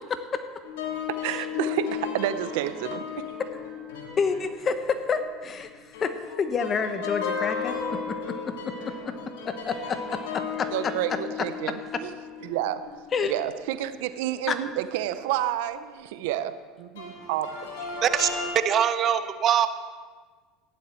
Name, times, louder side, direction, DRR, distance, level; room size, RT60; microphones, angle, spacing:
voice 1, 0.1-0.4 1.3-1.4 4.2-9.2 9.4-10.7 13.1-13.3 14.5-14.6, left 5 dB, 35° left, 9 dB, 1.1 m, -29 dB
sound 1, 0.6-5.6 5.9-13.7 14.3-14.4 17.0-18.5, left 6 dB, 90° left, 3.5 m, -35 dB
voice 2, 1.1-3.3 10.7-12.1 12.4-12.8 13.3-17.5, right 12 dB, 80° right, 12 dB, 0.6 m, -30 dB
voice 3, 18.6-19.7, right 9 dB, 45° right, 11 dB, 0.8 m, -22 dB
15.0 x 10.5 x 4.4 m, 1.5 s
supercardioid pair, 105°, 0 cm